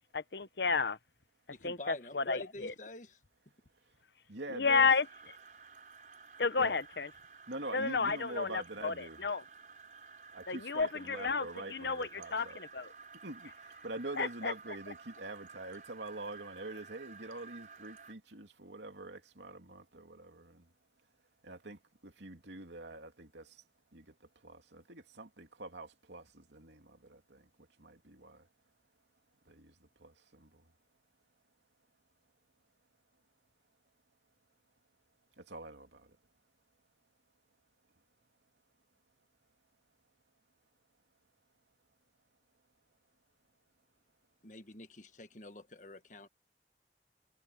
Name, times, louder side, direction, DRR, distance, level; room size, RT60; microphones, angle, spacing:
voice 1, 0.1-1.0 1.6-2.7 4.5-5.1 6.4-7.1 7.7-8.9 9.2-9.4 10.5-12.9 14.2-14.5, left 5 dB, 75° left, 1.0 m, -31 dB
voice 2, 1.5-3.2 44.4-46.3, left 2 dB, 45° left, 1.6 m, -47 dB
voice 3, 4.3-4.9 6.6-6.8 7.5-9.3 10.3-12.6 13.2-20.7 21.4-23.6 23.9-28.5 29.4-30.6 35.4-36.2, right 2 dB, 85° right, 2.9 m, -45 dB
sound 1, 5.0-18.1, right 5 dB, 45° right, 4.8 m, -54 dB
head